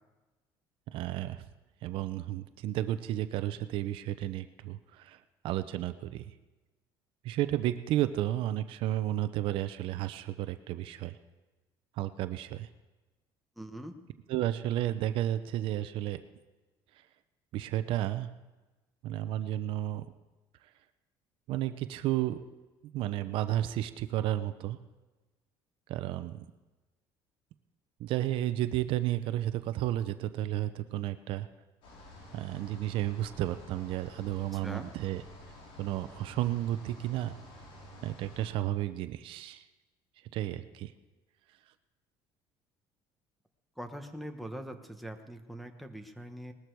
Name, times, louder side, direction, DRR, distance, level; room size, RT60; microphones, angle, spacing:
voice 1, 0.9-1.4 1.8-5.2 5.4-6.2 7.2-11.1 12.0-12.7 14.3-16.2 17.5-18.3 19.0-20.1 21.5-22.4 22.9-24.8 25.9-26.4 28.0-31.5 32.3-35.2 35.8-37.4 38.0-39.6 40.3-40.9, right 13 dB, 65° right, 11 dB, 0.7 m, -32 dB
voice 2, 13.6-13.9 34.5-34.9 43.8-46.5, equal, ahead, 4 dB, 1.1 m, -42 dB
sound 1, 31.8-38.5, left 1 dB, 70° left, 5.5 m, -50 dB
19.5 x 13.5 x 4.7 m, 1.2 s
cardioid pair, 145°, 10 cm